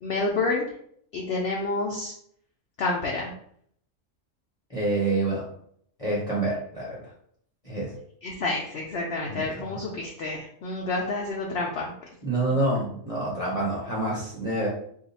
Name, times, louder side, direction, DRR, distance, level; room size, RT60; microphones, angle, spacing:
voice 1, 0.0-0.7 1.1-2.1 2.8-3.3 8.2-11.9, left 3 dB, 65° left, -1 dB, 0.7 m, -29 dB
voice 2, 4.7-5.5 6.0-7.0 7.6-7.9 9.2-9.7 12.2-14.7, right 2 dB, 30° left, -5 dB, 0.8 m, -27 dB
2.7 x 2.4 x 4.0 m, 0.66 s
omnidirectional pair, 1.4 m